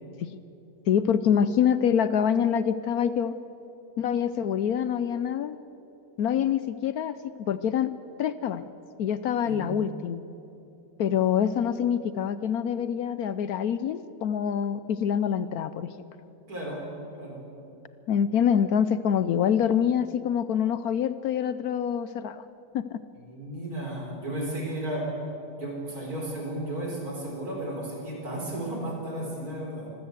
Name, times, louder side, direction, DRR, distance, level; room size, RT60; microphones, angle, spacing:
voice 1, 0.9-3.3 4.0-5.6 6.2-7.2 7.5-7.9 8.2-8.7 9.0-10.2 11.0-15.9 18.1-22.4 22.7-23.0, left 8 dB, 70° left, 14 dB, 1.1 m, -25 dB
voice 2, 9.4-9.8 16.5-16.8 17.2-17.4 23.2-25.1 25.6-29.9, right 1 dB, 60° right, -1 dB, 5.0 m, -34 dB
25.0 x 14.5 x 8.0 m, 2.8 s
omnidirectional pair, 1.8 m